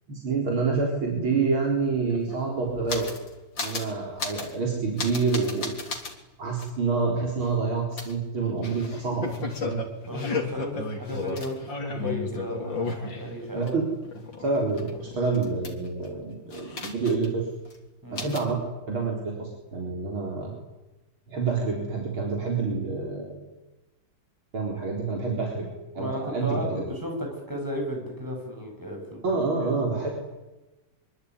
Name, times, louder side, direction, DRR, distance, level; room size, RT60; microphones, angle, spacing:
voice 1, 0.1-3.1 3.6-5.7 6.4-9.8 13.5-13.8 14.4-17.5 18.1-18.6 18.9-20.5 21.3-23.4 24.5-25.7 25.9-26.8 29.2-30.1, right 4 dB, 85° right, 0 dB, 5.1 m, -27 dB
sound 1, 1.6-1.7 1.9-3.3 3.6-3.9 4.2-4.5 5.0-6.1 6.6-6.7 8.0-13.7 14.0-16.1 16.5-17.4 17.7-17.8 18.2-18.5, left 3 dB, 65° left, 4.1 m, -34 dB
voice 2, 10.1-11.6 11.8-13.8 18.0-18.3 25.9-29.6, equal, 10° right, 1 dB, 7.8 m, -34 dB
24.0 x 23.5 x 9.8 m, 1.1 s
omnidirectional pair, 2.2 m